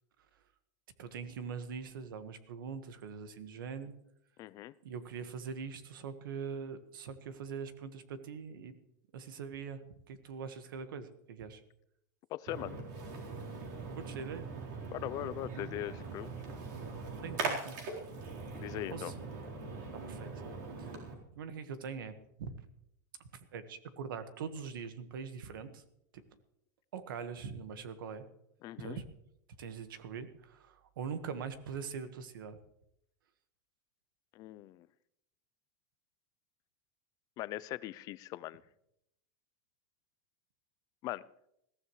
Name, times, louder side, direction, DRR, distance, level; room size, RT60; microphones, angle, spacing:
voice 1, 1.0-3.9 4.8-8.7 9.1-11.6 13.9-14.5 17.2-17.8 18.9-19.2 20.1-20.3 20.8-21.0 21.4-22.5 23.3-25.8 26.9-28.2 28.8-29.0 29.6-32.6, right 6 dB, 90° right, 10 dB, 1.6 m, -42 dB
voice 2, 4.4-4.7 12.3-12.7 14.9-16.3 18.5-19.1 28.6-29.0 34.3-34.9 37.4-38.6 41.0-41.2, left 15 dB, 35° left, 18 dB, 0.5 m, -40 dB
Splash splatter, 12.5-21.1, right 4 dB, 65° right, 4.2 m, -41 dB
21.0 x 15.0 x 3.2 m, 0.80 s
supercardioid pair, 150°, 11 cm